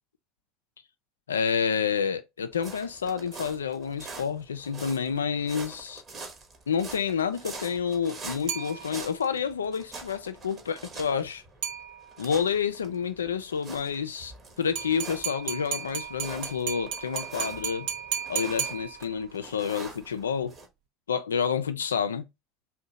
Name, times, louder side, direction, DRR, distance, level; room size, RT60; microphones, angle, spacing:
voice 1, 1.3-6.0 6.7-11.4 12.2-14.3 14.6-17.9 18.3-20.5 21.1-22.3, left 7 dB, 80° left, 0.3 m, -29 dB
sound 1, 2.5-20.7, right 3 dB, 40° right, 1.0 m, -45 dB
sound 2, 8.5-9.3 11.6-12.4 14.8-19.4, right 9 dB, 65° right, 0.5 m, -35 dB
2.7 x 2.1 x 3.8 m
figure-of-eight pair, 65°, 0 cm